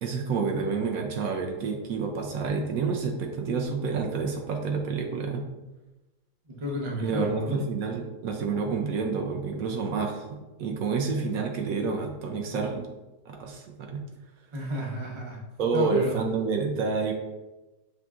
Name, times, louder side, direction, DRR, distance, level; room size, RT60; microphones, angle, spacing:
voice 1, 0.0-5.4 7.0-12.9 13.3-14.0 15.6-17.1, right 4 dB, 70° right, 2 dB, 0.9 m, -29 dB
voice 2, 6.5-7.6 14.5-15.4 15.7-16.2, left 1 dB, 45° right, -1 dB, 0.4 m, -32 dB
6.0 x 2.7 x 2.3 m, 1.1 s
omnidirectional pair, 1.7 m